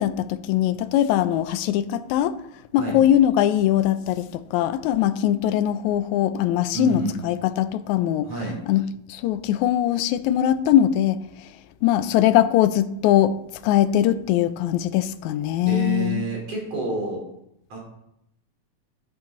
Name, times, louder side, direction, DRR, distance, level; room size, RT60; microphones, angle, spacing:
voice 1, 0.0-2.4 2.7-8.3 8.7-11.2 11.8-13.4 13.6-16.2, left 11 dB, 80° left, 2.0 m, -21 dB
voice 2, 6.7-7.2 8.2-8.6 15.7-17.2 17.7-17.8, right 3 dB, 55° right, 4.6 m, -28 dB
11.0 x 10.5 x 3.9 m
omnidirectional pair, 3.4 m